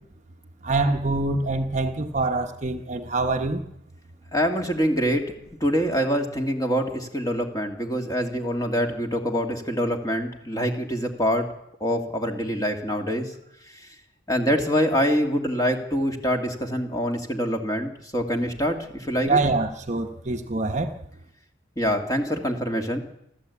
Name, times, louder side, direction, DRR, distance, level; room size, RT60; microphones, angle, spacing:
voice 1, 0.6-3.6 19.2-20.9, right 3 dB, 35° right, 5 dB, 1.1 m, -25 dB
voice 2, 4.3-5.3 5.6-11.5 11.8-13.3 13.7-13.9 14.3-19.4 21.8-23.0, equal, 20° left, 3 dB, 2.4 m, -25 dB
29.5 x 12.5 x 8.5 m, 0.80 s
head